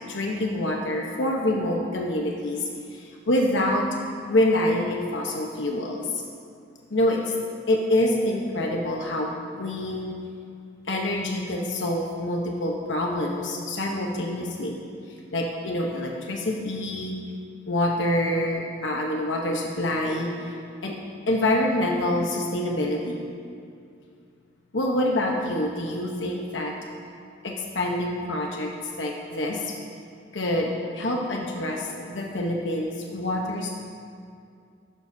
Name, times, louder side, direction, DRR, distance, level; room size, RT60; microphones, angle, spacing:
voice 1, 0.0-3.9 4.3-6.2 6.9-7.3 7.7-9.3 9.6-10.1 10.9-14.8 15.1-17.1 17.7-20.5 20.8-21.0 21.3-23.2 24.7-26.7 27.4-29.7 30.3-33.7, left 1 dB, 90° left, 0 dB, 1.0 m, -26 dB
14.5 x 12.0 x 2.7 m, 2.4 s
head